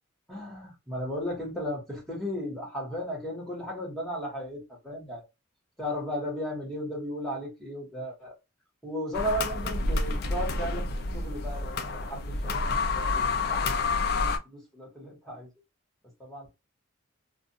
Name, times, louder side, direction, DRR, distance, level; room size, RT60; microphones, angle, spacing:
voice 1, 0.3-5.2 5.8-8.3 8.8-10.9 11.1-13.8 14.2-15.5 16.2-16.5, equal, ahead, 1.2 m, -35 dB
sound 1, 9.1-14.4, left 3 dB, 50° left, 0.4 m, -29 dB
2.5 x 2.2 x 2.6 m
head